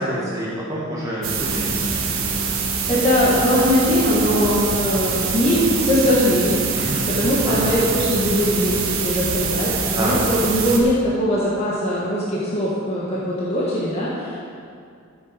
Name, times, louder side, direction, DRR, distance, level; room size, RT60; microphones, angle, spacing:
voice 1, 0.0-2.0 6.8-7.0 7.4-7.7 9.9-10.2, equal, 15° right, -7 dB, 2.2 m, -27 dB
sound 1, 1.2-10.8, right 5 dB, 75° right, 1.5 m, -24 dB
voice 2, 2.9-14.4, equal, 30° left, -7 dB, 1.6 m, -21 dB
13.5 x 8.2 x 5.2 m, 2.3 s
head